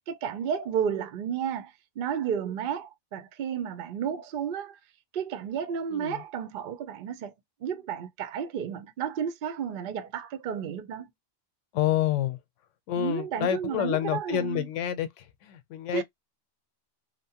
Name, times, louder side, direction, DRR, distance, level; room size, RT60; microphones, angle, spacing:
voice 1, 0.1-4.8 5.1-7.3 7.6-11.1 13.0-14.7 15.9-16.0, right 8 dB, 60° right, 0.5 m, -32 dB
voice 2, 5.9-6.2 11.7-12.4 12.9-16.0, left 11 dB, 80° left, 0.9 m, -28 dB
2.8 x 2.0 x 2.7 m
omnidirectional pair, 1.3 m